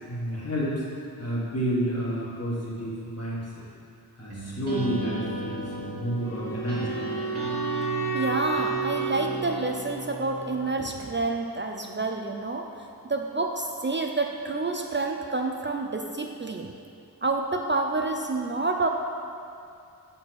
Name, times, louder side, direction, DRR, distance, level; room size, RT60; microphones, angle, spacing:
voice 1, 0.1-0.8 1.2-3.5 4.2-7.3, equal, 40° left, -6 dB, 1.7 m, -30 dB
sound 1, 4.3-11.1, right 1 dB, 80° right, 1.5 m, -36 dB
Wind instrument woodwind instrument, 6.2-10.3, right 4 dB, 10° left, 0.7 m, -31 dB
voice 2, 8.1-12.7 13.0-16.7 17.2-18.9, right 3 dB, 30° right, 2 dB, 0.4 m, -28 dB
6.3 x 4.3 x 6.0 m, 2.6 s
wide cardioid pair, 95°, 39 cm